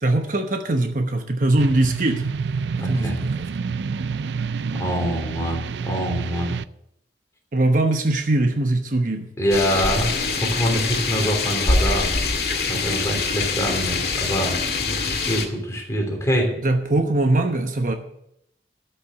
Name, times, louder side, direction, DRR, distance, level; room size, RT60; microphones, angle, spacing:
voice 1, 0.0-2.3 2.8-3.5 7.5-9.3 16.6-17.9, right 2 dB, 45° right, 5 dB, 1.0 m, -21 dB
sound 1, 1.6-6.6, right 5 dB, 75° right, 0.4 m, -28 dB
voice 2, 2.8-3.2 4.7-6.6 9.4-12.1 12.7-16.5, equal, 15° left, 1 dB, 3.3 m, -25 dB
sound 2, 9.5-15.5, left 4 dB, 60° left, 1.9 m, -24 dB
13.0 x 6.7 x 7.8 m, 0.77 s
head